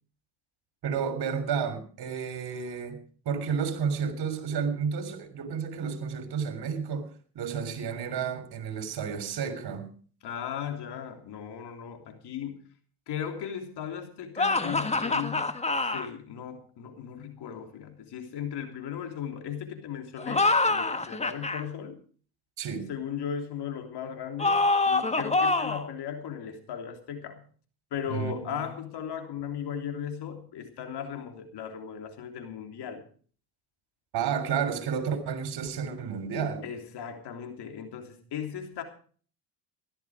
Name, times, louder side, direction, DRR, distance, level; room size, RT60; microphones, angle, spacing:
voice 1, 0.8-3.0 3.3-7.1 7.4-9.9 22.6-22.9 28.1-28.6 34.1-36.6, right 6 dB, 60° right, 3.6 m, -31 dB
voice 2, 10.2-12.6 13.1-22.0 22.9-27.4 27.9-33.0 36.6-38.8, left 8 dB, 65° left, 3.3 m, -37 dB
sound 1, 14.4-16.1 20.2-21.6 24.4-25.9, left 3 dB, 15° left, 1.6 m, -25 dB
15.5 x 12.0 x 4.9 m
supercardioid pair, 80°, 43 cm